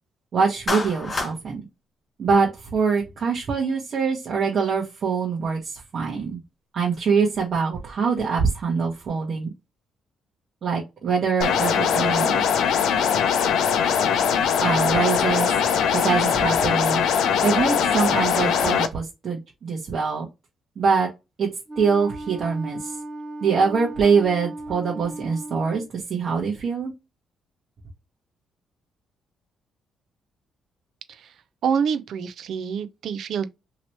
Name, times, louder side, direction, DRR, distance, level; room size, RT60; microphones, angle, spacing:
voice 1, 0.3-1.7 2.2-6.4 6.7-9.5 10.6-12.5 14.6-15.5 15.9-17.1 17.4-20.3 20.8-21.1 21.4-21.5 21.8-23.0 23.4-26.9, right 5 dB, 50° right, 1.0 m, -24 dB
Clapping, 0.7-1.4, left 2 dB, 30° left, 0.9 m, -27 dB
sound 1, 11.4-18.9, left 7 dB, 80° left, 0.5 m, -21 dB
Wind instrument woodwind instrument, 21.7-25.9, right 1 dB, 25° right, 0.6 m, -36 dB
voice 2, 31.6-33.5, right 7 dB, 70° right, 0.5 m, -26 dB
2.9 x 2.9 x 3.1 m
cardioid pair, 90°, 0 cm